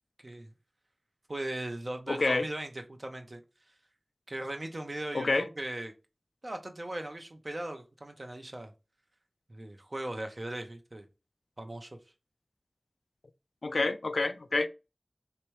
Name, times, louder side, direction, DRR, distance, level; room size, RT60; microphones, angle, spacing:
voice 1, 1.3-3.4 4.3-5.9 6.4-8.7 9.5-11.1 11.6-11.9, right 1 dB, 45° right, 0.7 m, -38 dB
voice 2, 2.1-2.5 5.1-5.5 13.6-14.7, left 3 dB, 80° left, 0.3 m, -28 dB
3.4 x 2.9 x 3.1 m
wide cardioid pair, 60°, 0 cm